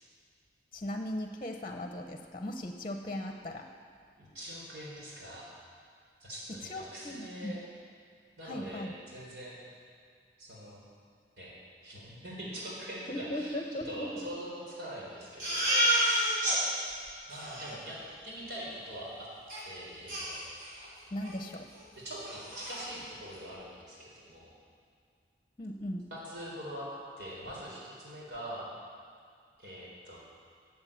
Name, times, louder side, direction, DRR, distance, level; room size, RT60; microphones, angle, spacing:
voice 1, 0.7-3.7 6.5-7.6 8.4-8.9 13.1-14.3 21.1-21.7 25.6-26.1, left 1 dB, 30° left, 4 dB, 0.9 m, -38 dB
voice 2, 4.2-5.6 6.2-7.6 8.4-9.6 10.4-10.8 11.4-11.5 11.8-13.6 13.8-15.9 17.3-18.0 18.2-19.3 19.6-20.4 22.0-24.5 26.1-26.9 27.2-28.7 29.6-30.2, equal, 75° right, -5 dB, 3.9 m, -43 dB
Crying sobbing, 15.4-16.6 17.0-17.1 17.3-17.7 19.5-19.6 20.1-20.9 21.2-21.4 21.7-21.8 22.2-22.8, right 1 dB, 50° right, 4.6 m, -29 dB
14.5 x 7.8 x 8.6 m, 2.2 s
head